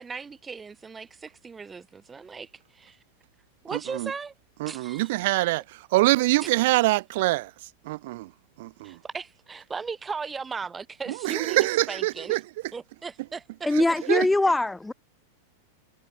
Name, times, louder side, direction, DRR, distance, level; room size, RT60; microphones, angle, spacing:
voice 1, 0.0-3.0 3.6-4.3 4.7-5.5 6.4-6.5 8.8-12.4 12.7-13.7, right 5 dB, 15° right, 6.2 m, -37 dB
voice 2, 3.7-4.1 4.6-5.6 5.9-7.5 7.9-8.3 8.6-8.9 11.2-12.4 13.8-13.9 14.1-14.3, right 20 dB, 50° right, 0.5 m, -24 dB
voice 3, 13.7-14.9, left 2 dB, 5° left, 1.0 m, -22 dB
figure-of-eight pair, 90°, 0 cm